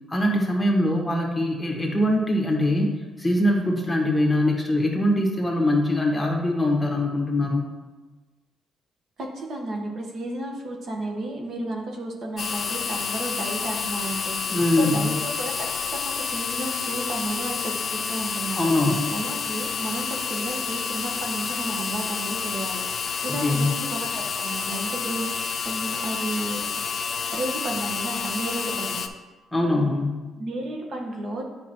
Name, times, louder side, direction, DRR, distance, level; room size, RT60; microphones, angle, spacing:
voice 1, 0.1-2.9 3.2-7.6 14.5-15.1 18.5-19.1 23.3-23.7 29.5-30.2, left 1 dB, 10° left, 0 dB, 1.4 m, -22 dB
voice 2, 9.2-18.7 19.1-25.3 25.6-26.7 27.3-29.0 30.4-31.4, right 1 dB, 60° right, 1 dB, 1.2 m, -32 dB
sound 1, 12.4-29.1, left 6 dB, 50° left, 0.5 m, -29 dB
8.3 x 5.3 x 3.0 m, 1.2 s
cardioid pair, 90°, 0 cm